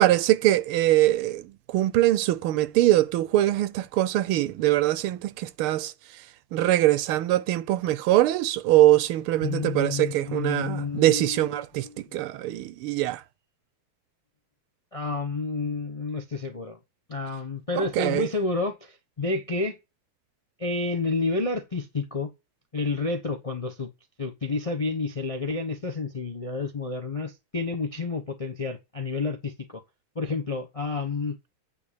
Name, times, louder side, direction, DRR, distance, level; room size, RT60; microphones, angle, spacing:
voice 1, 0.0-5.9 6.5-13.2 17.8-18.3, right 15 dB, 85° right, 1.5 m, -23 dB
voice 2, 9.4-12.2 14.9-16.8 17.1-19.8 20.6-22.3 22.7-23.9 24.2-29.8 30.1-31.4, left 3 dB, 40° left, 0.5 m, -30 dB
9.4 x 3.4 x 6.7 m
omnidirectional pair, 2.3 m